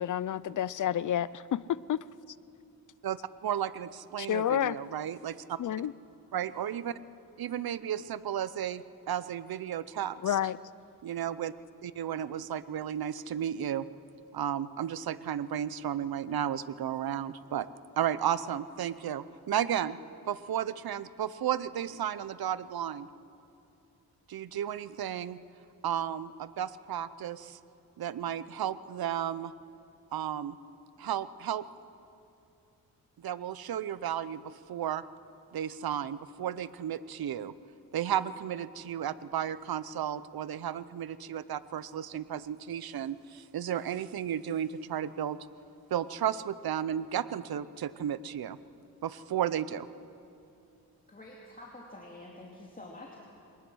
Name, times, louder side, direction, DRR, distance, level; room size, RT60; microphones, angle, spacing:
voice 1, 0.0-2.0 4.2-4.8 5.6-5.9 10.2-10.6, left 10 dB, 55° left, 19 dB, 0.5 m, -30 dB
voice 2, 3.0-5.6 6.3-6.9 7.4-10.2 11.0-11.5 11.8-13.9 14.3-17.7 18.0-20.0 20.3-23.1 24.3-25.4 25.8-27.6 28.0-29.5 30.1-30.6 31.0-31.7 33.2-35.0 35.5-37.5 37.9-45.4 45.9-48.6 49.0-49.9, right 10 dB, 75° right, 16 dB, 0.7 m, -33 dB
voice 3, 51.1-53.2, left 2 dB, 20° left, -2 dB, 2.5 m, -47 dB
22.0 x 19.5 x 6.3 m, 2.7 s
cardioid pair, 85°, 37 cm